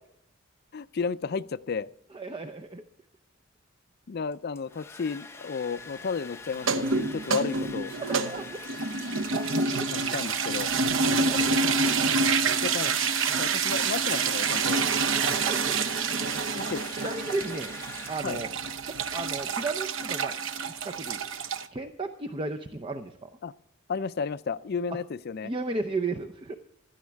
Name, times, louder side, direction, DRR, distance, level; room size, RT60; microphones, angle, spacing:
voice 1, 0.7-1.9 4.1-7.9 9.9-10.7 12.4-12.9 13.4-14.8 16.5-16.9 18.2-18.4 23.4-23.5 23.9-25.5, left 5 dB, 50° left, 15 dB, 0.4 m, -33 dB
voice 2, 2.1-2.8 8.0-8.6 9.6-9.9 10.2-10.3 11.1-12.2 12.4-12.6 14.8-16.2 16.6-17.7 18.1-18.5 18.8-20.4 20.8-21.2 21.7-23.3 25.4-26.5, right 3 dB, 25° right, 6 dB, 0.6 m, -35 dB
Domestic sounds home sounds, 4.3-18.6, left 4 dB, 15° left, 0.7 m, -44 dB
sound 1, 6.5-21.7, right 4 dB, 70° right, 0.8 m, -27 dB
16.0 x 12.5 x 3.5 m, 0.75 s
head